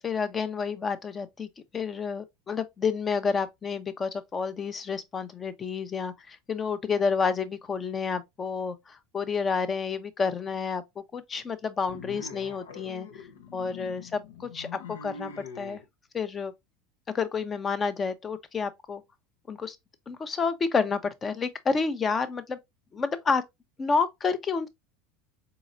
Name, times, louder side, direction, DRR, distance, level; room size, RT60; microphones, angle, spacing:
voice 1, 0.0-1.5 1.7-13.3 13.5-15.8 16.1-16.5 17.1-19.0 19.5-19.8 20.1-22.6 22.9-23.4 23.8-24.7, left 5 dB, 25° left, 0.7 m, -30 dB
sound 1, 11.9-15.8, left 5 dB, 80° left, 0.7 m, -44 dB
4.0 x 3.9 x 2.4 m
hypercardioid pair, 85°, 0 cm